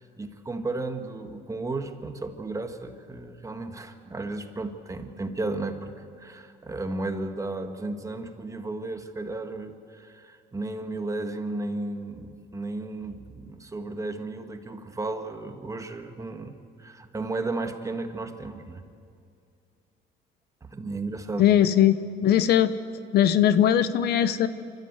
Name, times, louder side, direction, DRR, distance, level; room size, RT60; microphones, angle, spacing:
voice 1, 0.0-18.8 20.6-21.5, right 2 dB, 20° right, 6 dB, 1.4 m, -34 dB
voice 2, 21.4-22.7 23.1-24.5, left 10 dB, 70° left, 13 dB, 0.8 m, -20 dB
26.0 x 13.5 x 8.0 m, 2.4 s
cardioid pair, 110°, 17 cm